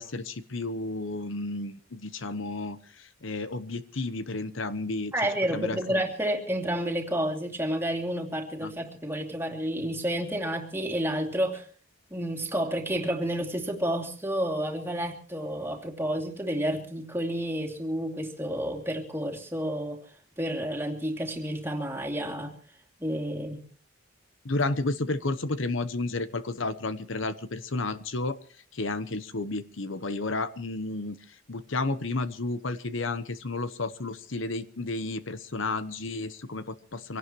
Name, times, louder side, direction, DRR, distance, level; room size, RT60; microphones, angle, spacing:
voice 1, 0.0-5.1 5.5-6.0 8.6-8.7 24.4-28.4 28.7-31.2 31.5-37.2, left 2 dB, 65° left, 13 dB, 1.0 m, -32 dB
voice 2, 5.1-11.7 12.1-20.0 20.4-22.5 23.0-23.6, right 1 dB, 10° right, 3 dB, 2.7 m, -30 dB
25.5 x 17.5 x 3.1 m, 0.41 s
head